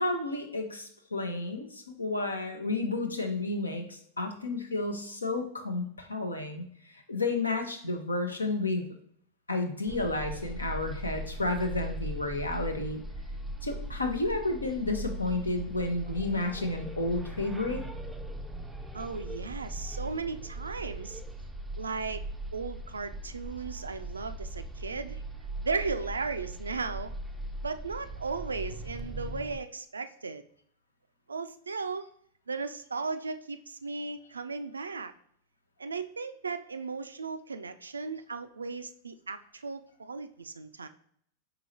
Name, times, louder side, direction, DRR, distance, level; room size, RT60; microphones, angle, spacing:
voice 1, 0.0-6.6 7.1-8.9 9.5-13.0 13.6-17.8, left 2 dB, 80° left, 5 dB, 0.7 m, -31 dB
sound 1, 9.9-29.6, right 1 dB, 5° right, 0.4 m, -39 dB
voice 2, 18.9-21.2 21.8-22.2 22.5-25.2 25.6-27.1 27.6-30.4 31.3-32.1 32.5-35.1 35.8-40.9, right 4 dB, 75° right, 10 dB, 0.3 m, -36 dB
4.8 x 3.9 x 2.7 m, 0.65 s
figure-of-eight pair, 90°, 0 cm